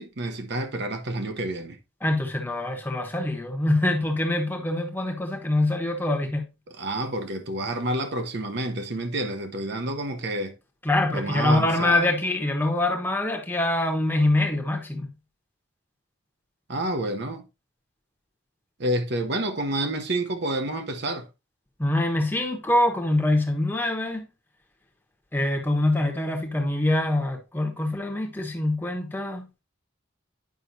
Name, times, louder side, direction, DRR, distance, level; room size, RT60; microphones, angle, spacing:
voice 1, 0.0-1.8 6.7-10.6 11.1-12.1 16.7-17.5 18.8-21.3, right 1 dB, 55° right, 0.9 m, -29 dB
voice 2, 2.0-6.4 10.8-15.1 21.8-24.3 25.3-29.5, left 1 dB, 10° left, 1.1 m, -24 dB
9.5 x 5.6 x 2.7 m
head